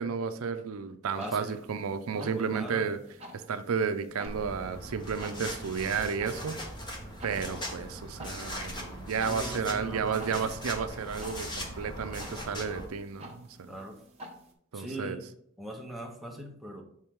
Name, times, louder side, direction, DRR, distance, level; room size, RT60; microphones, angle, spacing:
voice 1, 0.0-3.0 3.3-6.6 7.2-13.7 14.7-15.2, right 6 dB, 70° right, 10 dB, 0.5 m, -32 dB
sound 1, 1.1-14.5, right 1 dB, 30° right, 1.0 m, -51 dB
voice 2, 1.2-1.6 2.1-2.9 9.3-10.4 13.7-14.0 14.7-15.2 15.6-16.8, right 1 dB, ahead, 1 dB, 0.8 m, -40 dB
sound 2, 4.3-12.9, equal, 20° left, 1.0 m, -40 dB
6.3 x 4.4 x 3.6 m, 0.69 s
head